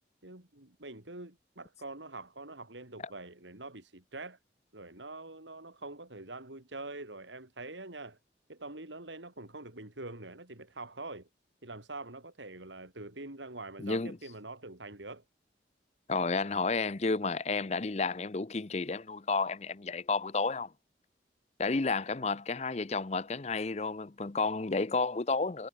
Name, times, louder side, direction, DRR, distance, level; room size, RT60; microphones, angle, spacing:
voice 1, 0.2-4.4 4.7-8.2 8.5-11.3 11.6-15.2, right 2 dB, 85° right, 4.1 m, -45 dB
voice 2, 13.8-14.2 16.1-20.7 21.6-25.7, left 4 dB, 35° left, 0.7 m, -31 dB
head